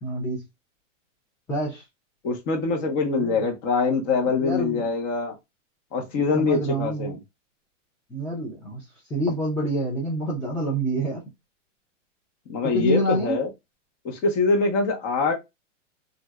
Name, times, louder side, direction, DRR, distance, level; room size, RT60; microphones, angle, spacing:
voice 1, 0.0-0.4 1.5-1.8 3.2-3.4 4.4-4.9 6.3-7.1 8.1-11.2 12.6-13.4, right 1 dB, 5° left, 0.4 m, -27 dB
voice 2, 2.2-5.3 5.9-7.2 12.5-13.5 14.0-15.3, left 4 dB, 35° left, 1.1 m, -24 dB
3.1 x 2.6 x 2.3 m
hypercardioid pair, 145°, 38 cm